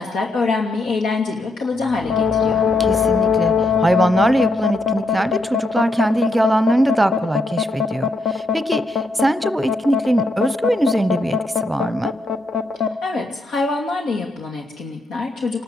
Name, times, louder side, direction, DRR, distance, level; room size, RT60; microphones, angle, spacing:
voice 1, 0.0-2.6 13.0-15.6, left 3 dB, 75° left, 0 dB, 2.7 m, -24 dB
sound 1, 1.7-6.8, left 2 dB, 25° left, 5.0 m, -35 dB
sound 2, 2.0-12.9, left 7 dB, 55° left, 1.3 m, -20 dB
voice 2, 2.8-12.1, right 1 dB, 10° right, 15 dB, 1.0 m, -21 dB
26.5 x 12.5 x 8.2 m, 0.98 s
cardioid pair, 90°, 0 cm